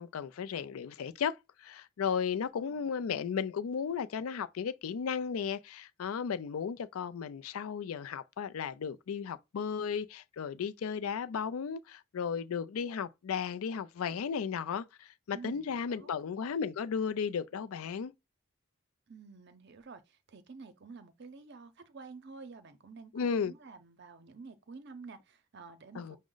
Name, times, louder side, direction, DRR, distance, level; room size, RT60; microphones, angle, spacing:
voice 1, 0.0-18.1 23.1-23.5 25.9-26.2, left 6 dB, 80° left, 0.4 m, -35 dB
voice 2, 2.6-3.1 15.3-16.1 19.1-26.2, right 4 dB, 50° right, 0.6 m, -50 dB
6.1 x 2.1 x 3.8 m
head